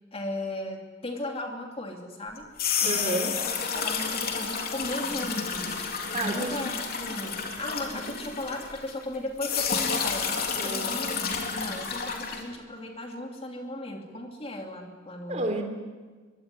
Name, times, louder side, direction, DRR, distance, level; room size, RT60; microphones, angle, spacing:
voice 1, 0.1-2.5 2.8-3.3 3.6-5.8 6.2-11.2 11.5-15.5, left 1 dB, 30° left, 2 dB, 2.8 m, -36 dB
sound 1, 2.4-9.1 9.4-12.4, left 6 dB, 50° left, 3.7 m, -30 dB
voice 2, 2.8-3.3 6.1-6.5 10.6-11.1 15.3-15.6, right 1 dB, 35° right, 4 dB, 3.5 m, -30 dB
24.5 x 23.0 x 9.8 m, 1.4 s
head